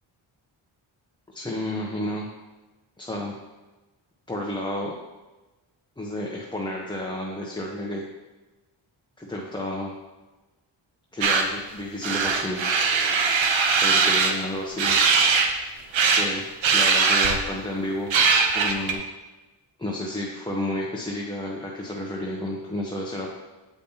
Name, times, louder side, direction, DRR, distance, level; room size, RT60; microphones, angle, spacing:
voice 1, 1.3-2.3 3.0-3.3 4.3-4.9 6.0-8.0 9.2-9.9 11.1-12.6 13.8-15.0 16.1-16.4 16.7-18.1 18.5-19.0 19.8-23.3, left 1 dB, 10° left, -2 dB, 0.7 m, -31 dB
sound 1, 11.2-11.4 12.0-14.3 14.8-15.5 15.9-16.3 16.6-17.5 18.1-18.9, right 5 dB, 70° right, 0.8 m, -20 dB
7.1 x 5.1 x 2.8 m, 1.2 s
cardioid pair, 75°, 48 cm